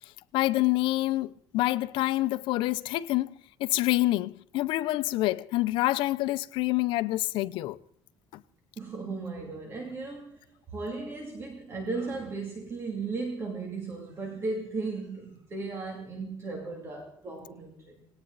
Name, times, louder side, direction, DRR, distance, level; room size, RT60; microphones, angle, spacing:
voice 1, 0.3-3.3 3.6-7.8 8.3-8.4, left 18 dB, 75° left, 0.7 m, -27 dB
voice 2, 8.8-10.4 10.7-18.1, right 3 dB, 30° right, 2.8 m, -36 dB
19.5 x 18.0 x 4.1 m
cardioid pair, 160°, 9 cm